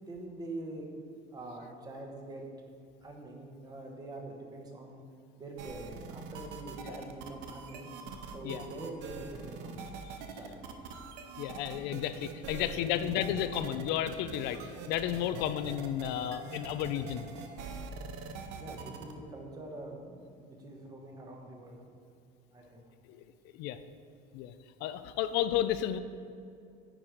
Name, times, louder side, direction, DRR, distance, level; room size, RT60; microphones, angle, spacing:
voice 1, 0.1-0.9 1.3-2.4 3.0-5.0 5.4-7.9 8.3-9.9 10.3-10.6 12.5-13.6 18.5-21.8 22.5-22.9, right 2 dB, 20° right, 1 dB, 1.0 m, -44 dB
sound 1, 5.6-19.1, right 5 dB, 75° right, 0.8 m, -44 dB
voice 2, 11.4-17.2 23.1-23.2 23.5-23.8 24.3-24.5 24.8-26.0, left 11 dB, 65° left, 11 dB, 0.4 m, -32 dB
9.9 x 4.7 x 5.0 m, 2.4 s
cardioid pair, 170°, 18 cm